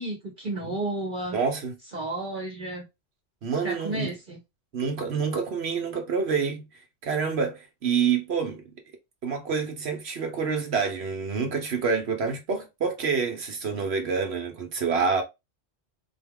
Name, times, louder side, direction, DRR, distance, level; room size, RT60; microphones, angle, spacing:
voice 1, 0.0-1.4 1.9-2.8 3.6-4.4, right 2 dB, 45° right, 1.1 m, -32 dB
voice 2, 1.3-1.7 3.4-4.1 4.7-6.7 7.0-8.6 9.2-15.2, right 5 dB, 65° right, 1.1 m, -27 dB
4.1 x 2.3 x 3.6 m
omnidirectional pair, 1.2 m